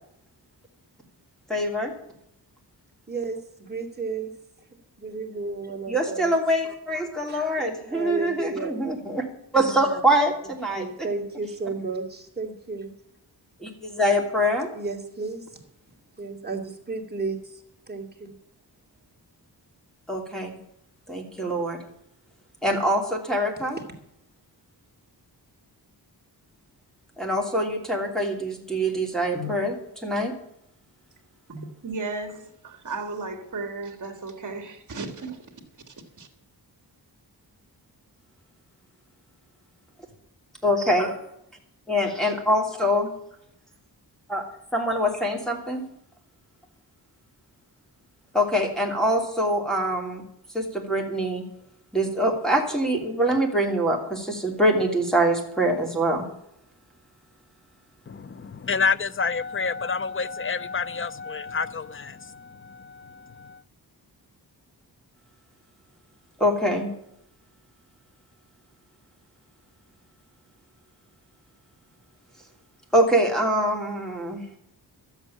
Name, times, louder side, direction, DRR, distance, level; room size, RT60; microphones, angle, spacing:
voice 1, 1.5-1.9 5.9-9.2 9.5-11.1 13.6-14.7 20.1-20.5 21.1-21.8 22.6-23.8 27.2-30.3 40.6-41.2 41.9-43.1 44.3-44.4 44.7-45.8 48.3-50.2 50.5-51.4 51.9-56.2 66.4-66.9 72.9-74.4, equal, ahead, 3.0 m, -24 dB
voice 2, 3.1-4.3 5.0-6.3 7.3-7.4 7.9-8.8 10.8-12.9 14.7-15.5 16.2-18.3, right 3 dB, 25° right, 2.5 m, -33 dB
voice 3, 31.5-35.5 35.9-36.3, right 3 dB, 50° right, 2.4 m, -35 dB
voice 4, 58.1-63.6, left 5 dB, 30° left, 0.6 m, -29 dB
13.0 x 8.1 x 8.7 m
wide cardioid pair, 120°, 40 cm